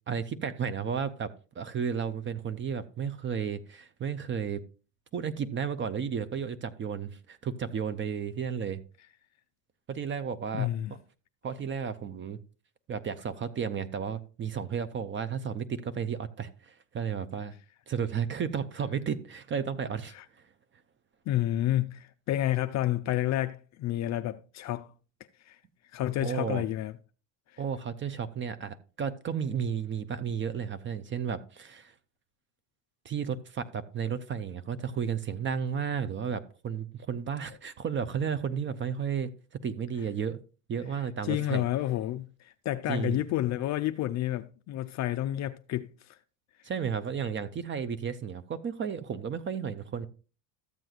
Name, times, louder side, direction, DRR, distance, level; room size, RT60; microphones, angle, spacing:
voice 1, 0.1-4.6 5.1-8.8 9.9-10.7 11.4-12.4 12.9-17.5 17.9-20.4 26.2-26.6 27.6-31.9 33.0-39.3 39.6-40.4 40.7-41.6 42.9-43.2 46.6-50.1, right 7 dB, 25° right, 0.5 m, -33 dB
voice 2, 10.5-10.9 20.1-20.2 21.3-24.9 25.5-25.6 25.9-26.9 27.5-27.6 41.2-45.9, left 13 dB, 40° left, 0.4 m, -30 dB
13.5 x 7.7 x 2.4 m
supercardioid pair, 115°, 49 cm